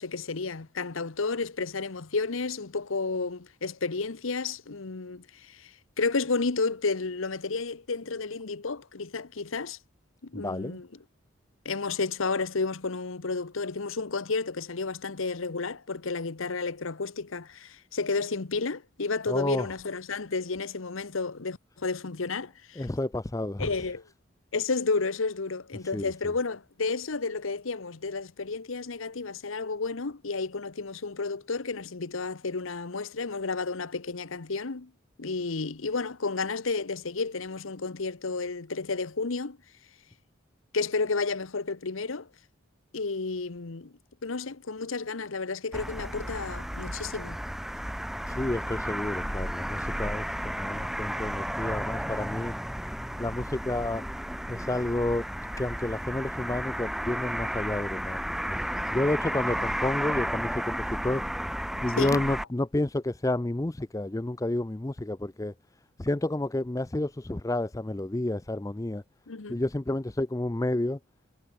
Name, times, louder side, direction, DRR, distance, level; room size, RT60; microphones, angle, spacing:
voice 1, 0.0-5.7 6.0-9.8 10.3-10.9 11.6-22.9 23.6-24.0 24.5-34.9 35.2-39.6 40.7-42.3 42.9-43.9 44.2-47.4 62.0-62.2 69.3-69.6, left 4 dB, 80° left, 1.0 m, -31 dB
voice 2, 10.3-10.8 19.3-19.7 22.8-23.7 25.9-26.1 48.4-52.5 53.2-54.0 54.5-55.2 55.6-58.6 58.9-61.2 61.8-65.5 66.0-69.0 69.5-71.0, left 1 dB, 15° left, 0.5 m, -30 dB
sound 1, 45.7-62.4, equal, ahead, 1.4 m, -33 dB
head